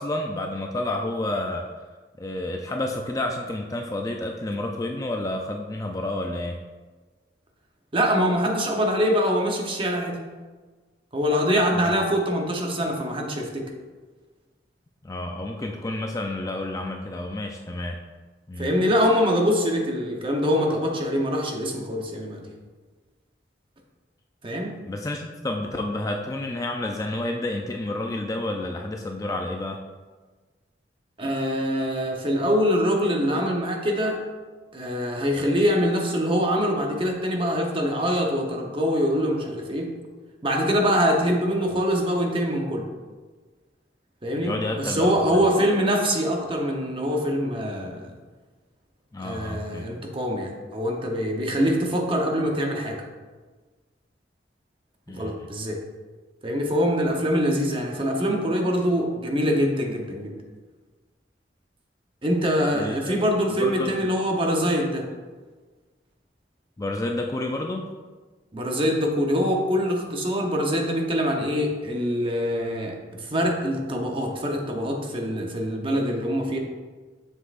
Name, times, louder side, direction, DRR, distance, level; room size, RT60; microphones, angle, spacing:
voice 1, 0.0-1.7 2.2-6.6 11.7-12.0 15.0-18.0 18.5-18.7 24.9-29.8 44.3-45.1 49.1-49.9 55.1-55.3 62.7-63.1 63.6-64.1 66.8-67.9, left 1 dB, 20° left, 2 dB, 0.4 m, -30 dB
voice 2, 7.9-10.2 11.1-13.7 18.6-22.5 24.4-24.7 31.2-34.2 34.7-39.9 40.4-42.8 44.2-48.1 49.2-53.0 55.1-55.8 56.4-60.3 62.2-65.0 68.5-76.6, equal, 30° right, 1 dB, 0.9 m, -24 dB
7.3 x 6.6 x 2.5 m, 1.3 s
head